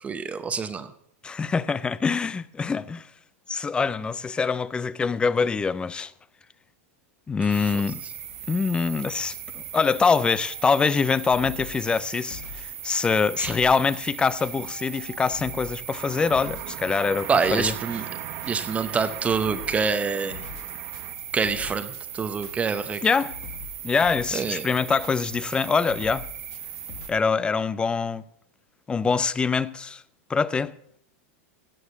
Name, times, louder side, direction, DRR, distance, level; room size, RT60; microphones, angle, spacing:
voice 1, 0.0-0.9 7.5-7.7 13.4-13.5 17.3-18.0 18.5-20.4 21.3-23.0 24.3-24.6, right 5 dB, 15° right, 0.7 m, -26 dB
voice 2, 1.2-3.1 3.5-6.1 7.3-8.0 8.5-17.7 23.0-23.4 23.8-26.3 27.1-28.2 28.9-30.0 30.3-31.0, left 5 dB, 10° left, 0.4 m, -24 dB
sound 1, 7.5-27.1, right 9 dB, 85° right, 2.9 m, -38 dB
sound 2, 10.9-27.1, left 8 dB, 60° left, 1.5 m, -43 dB
sound 3, 15.3-21.1, right 13 dB, 45° right, 1.0 m, -40 dB
16.5 x 6.4 x 7.2 m
supercardioid pair, 135°, 8 cm